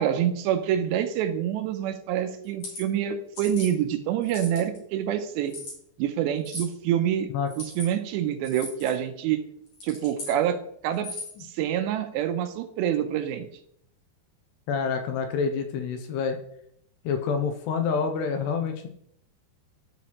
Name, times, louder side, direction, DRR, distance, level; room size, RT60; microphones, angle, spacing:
voice 1, 0.0-5.5 6.0-7.3 7.6-9.4 9.8-10.6 10.8-11.1 11.4-13.5, right 10 dB, 80° right, 8 dB, 2.7 m, -26 dB
sound 1, 2.4-2.8 3.4-3.7 4.2-4.8 5.5-5.8 6.4-6.7 7.5-7.9 8.4-8.9 9.7-10.4 10.9-11.4, left 2 dB, 40° left, 4.4 m, -38 dB
voice 2, 14.7-16.4 17.1-18.9, left 6 dB, 80° left, 6 dB, 2.6 m, -27 dB
13.0 x 6.0 x 3.0 m, 0.70 s
omnidirectional pair, 5.2 m